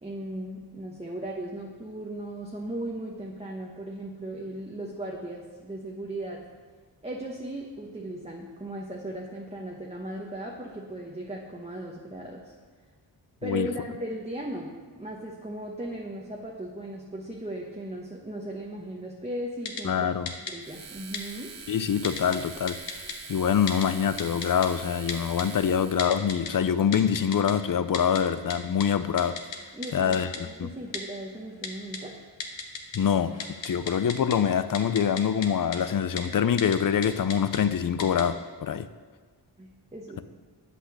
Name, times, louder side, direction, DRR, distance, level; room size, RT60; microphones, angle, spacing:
voice 1, 0.0-6.4 7.0-12.5 13.4-20.0 20.4-21.5 29.7-32.1 39.6-40.2, right 1 dB, 15° right, -1 dB, 0.9 m, -37 dB
Typing, 19.7-19.8 20.3-20.5 21.1-21.2 22.0-22.4 22.7-23.1 23.7-23.9 24.2-24.7 25.1-25.4 26.0-26.5 26.9-27.5 27.9-28.2 28.5-28.6 28.8-28.9 29.2-29.6 29.8-29.9 30.1-30.4 30.9-31.0 31.6-32.0 32.4-33.0 33.3-34.4 34.7-35.5 35.7-35.8 36.2-36.3 36.6-36.8 37.0-37.6 38.0-38.2, left 5 dB, 75° left, 1.0 m, -34 dB
voice 2, 19.8-20.3 21.7-22.8 23.3-29.3 29.9-30.3 30.6-30.7 32.9-33.3 33.6-38.9, left 8 dB, 50° left, 13 dB, 0.5 m, -25 dB
sound 1, 20.6-26.1, right 5 dB, 35° right, 0.5 m, -44 dB
8.1 x 5.8 x 5.9 m, 1.5 s
wide cardioid pair, 65°, 45 cm